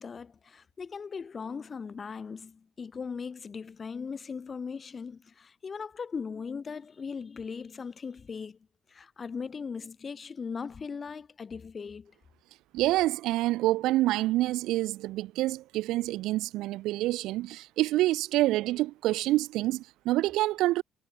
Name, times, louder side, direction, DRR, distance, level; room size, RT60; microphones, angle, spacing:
voice 1, 0.0-8.6 8.9-12.1, left 5 dB, 30° left, 7.2 m, -39 dB
voice 2, 12.7-20.8, right 17 dB, 80° right, 2.1 m, -27 dB
cardioid pair, 110°, 0 cm